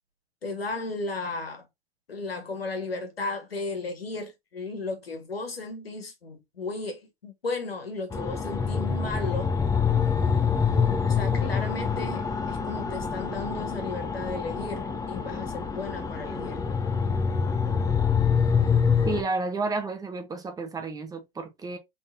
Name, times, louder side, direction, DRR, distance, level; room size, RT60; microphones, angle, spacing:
voice 1, 0.4-1.7 2.1-9.5 11.0-16.7, left 3 dB, 90° left, 1.7 m, -35 dB
sound 1, 8.1-19.2, left 6 dB, 10° left, 0.8 m, -26 dB
voice 2, 19.0-21.8, right 3 dB, 10° right, 1.1 m, -31 dB
3.9 x 3.8 x 2.7 m
hypercardioid pair, 105°, 29 cm